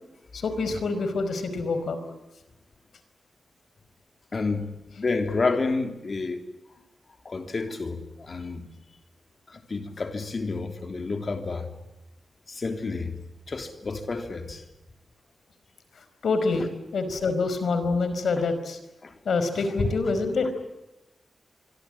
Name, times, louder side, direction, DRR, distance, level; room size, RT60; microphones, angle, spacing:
voice 1, 0.3-2.0 16.2-18.8 19.2-20.5, left 3 dB, 80° left, 4.9 m, -26 dB
voice 2, 4.3-6.4 7.2-8.7 9.5-11.7 12.5-13.1 13.5-14.6 16.5-16.7 19.0-19.1 19.6-20.1, left 3 dB, 45° left, 3.4 m, -30 dB
25.0 x 24.0 x 8.9 m
wide cardioid pair, 110°, 0 cm